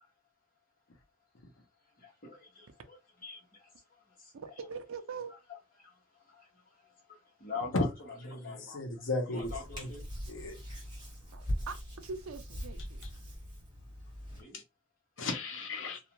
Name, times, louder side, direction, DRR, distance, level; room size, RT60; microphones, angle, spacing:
voice 1, 1.8-4.4 5.8-8.7 9.3-10.0 14.3-14.6, left 5 dB, 45° left, 1.1 m, -45 dB
voice 2, 4.3-5.3 11.3-13.1, right 5 dB, 85° right, 0.4 m, -42 dB
voice 3, 8.3-9.9 10.3-10.6 14.5-14.6 15.2-16.0, left 2 dB, 70° left, 0.9 m, -35 dB
Hands, 9.4-14.4, equal, 20° right, 1.5 m, -41 dB
2.5 x 2.4 x 2.9 m
head